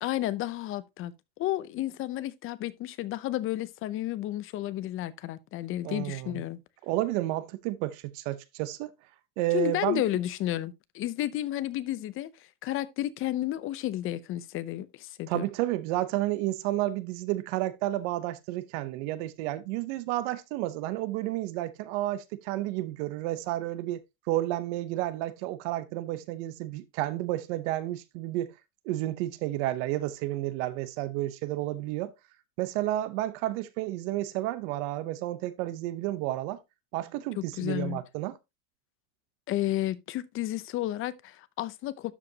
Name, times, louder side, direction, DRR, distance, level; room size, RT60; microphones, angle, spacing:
voice 1, 0.0-1.1 1.4-6.6 9.5-12.3 12.6-15.4 37.4-38.0 39.5-42.1, left 14 dB, 35° left, 0.6 m, -32 dB
voice 2, 5.8-6.4 6.8-8.9 9.4-10.0 15.3-24.0 24.3-28.5 28.8-32.1 32.6-36.6 36.9-38.4, right 15 dB, 65° right, 0.8 m, -31 dB
12.0 x 5.0 x 2.8 m
supercardioid pair, 150°, 38 cm